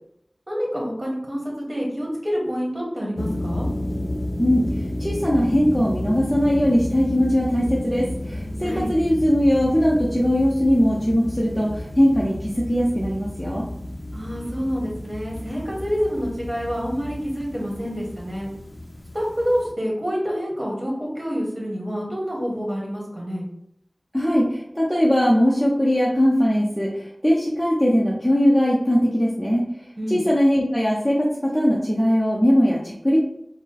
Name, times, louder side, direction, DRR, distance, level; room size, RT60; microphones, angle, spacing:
voice 1, 0.5-3.7 8.6-8.9 14.1-18.5 19.1-23.4 30.0-30.2, equal, 35° right, -3 dB, 1.5 m, -27 dB
sound 1, 3.2-19.7, left 1 dB, 40° left, 0.5 m, -32 dB
voice 2, 5.0-13.7 24.1-29.7 30.1-33.2, equal, ahead, -5 dB, 0.7 m, -20 dB
4.8 x 2.1 x 4.1 m, 0.74 s
wide cardioid pair, 60°, 0 cm